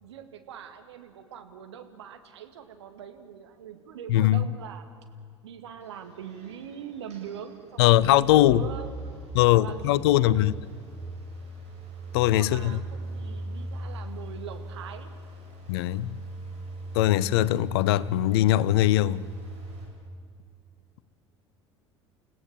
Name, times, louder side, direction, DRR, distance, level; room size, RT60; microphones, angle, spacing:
voice 1, 0.0-4.9 5.4-8.9 9.5-10.5 12.4-15.2, right 8 dB, 70° right, 2.0 m, -42 dB
voice 2, 4.1-4.4 7.8-8.6 9.3-10.5 12.1-12.8 15.7-16.2 16.9-19.2, left 15 dB, 60° left, 0.7 m, -21 dB
sound 1, 5.8-19.8, right 2 dB, 45° right, 7.4 m, -40 dB
30.0 x 17.0 x 7.3 m
figure-of-eight pair, 65°, 15 cm